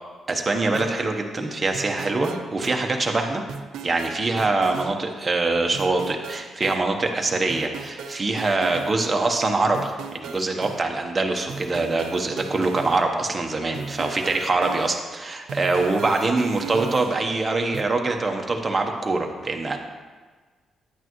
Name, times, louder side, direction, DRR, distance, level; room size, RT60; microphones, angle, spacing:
voice 1, 0.3-3.4 3.8-19.8, right 3 dB, 25° right, 2 dB, 1.0 m, -24 dB
sound 1, 0.7-1.0 1.7-2.8 3.5-4.9 5.7-6.8 7.5-8.9 9.7-10.8 11.5-13.0 13.7-15.0 15.5-17.4 17.7-17.8, right 6 dB, 90° right, 0.5 m, -36 dB
9.5 x 8.8 x 3.1 m, 1.4 s
cardioid pair, 120°, 0 cm